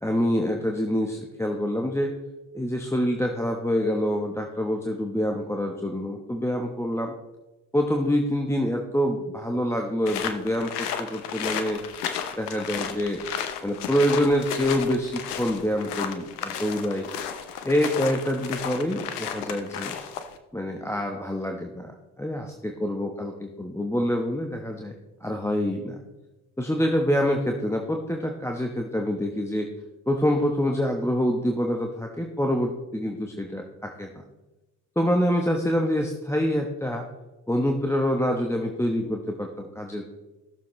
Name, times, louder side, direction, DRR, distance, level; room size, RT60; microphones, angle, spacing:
voice 1, 0.0-2.1 2.5-7.1 7.7-11.8 12.4-13.2 13.6-17.1 17.6-20.0 20.5-24.9 25.2-26.0 26.6-29.7 30.1-34.1 35.0-37.1 37.5-40.1, equal, 5° left, 2 dB, 1.1 m, -26 dB
sound 1, 10.1-20.4, left 8 dB, 85° left, 0.8 m, -33 dB
16.5 x 7.0 x 3.2 m, 1.1 s
hypercardioid pair, 50°, 45 cm